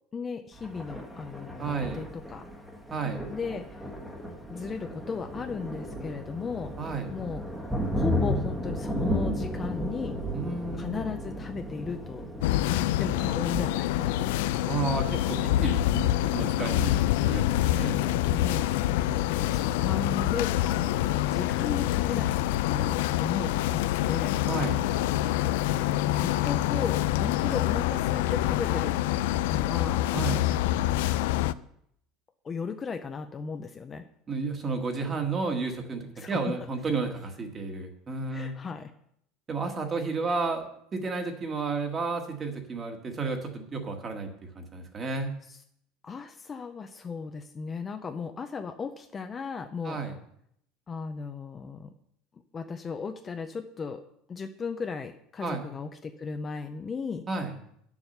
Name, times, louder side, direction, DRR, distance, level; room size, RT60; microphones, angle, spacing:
voice 1, 0.1-2.5 3.0-3.9 4.5-6.8 7.1-7.4 7.9-10.2 10.7-12.3 12.8-14.3 18.2-21.0 21.3-24.4 26.0-29.0 29.5-30.1 32.4-34.1 36.2-36.4 38.3-38.9 40.3-40.4 45.4-45.6 46.0-50.0 50.9-51.9 52.5-54.0 54.3-57.3, left 5 dB, 20° left, 7 dB, 0.5 m, -36 dB
Thunder, 0.5-20.3, equal, 5° right, 1.2 m, -35 dB
voice 2, 1.6-2.0 2.9-3.2 6.8-7.1 10.3-11.0 14.7-17.0 17.3-18.0 24.4-24.8 30.1-30.5 34.3-38.5 39.5-40.7 40.9-44.3 44.6-45.3 49.8-50.1 55.4-55.6 57.3-57.5, right 4 dB, 20° right, 5 dB, 1.5 m, -32 dB
sound 1, 12.4-31.5, left 14 dB, 85° left, 0.4 m, -26 dB
9.7 x 7.2 x 6.6 m, 0.71 s
cardioid pair, 165°, 0 cm